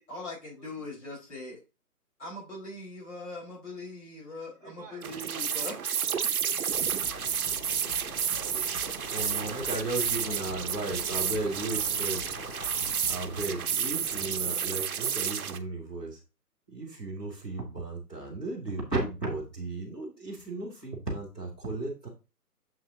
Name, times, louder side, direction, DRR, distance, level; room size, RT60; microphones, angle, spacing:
voice 1, 0.1-1.6 2.2-5.8, left 2 dB, 50° left, -3 dB, 4.5 m, -41 dB
voice 2, 4.6-6.4 7.5-10.6 11.7-12.2, right 5 dB, 25° right, 1 dB, 1.7 m, -53 dB
sound 1, 5.0-15.6, right 7 dB, 60° right, 0.8 m, -31 dB
sound 2, 6.7-14.6, left 7 dB, 75° left, 0.9 m, -46 dB
voice 3, 9.1-12.2 13.1-16.2 16.7-22.1, right 2 dB, 5° left, -8 dB, 0.8 m, -35 dB
7.3 x 6.2 x 2.7 m, 0.28 s
hypercardioid pair, 165°, 48 cm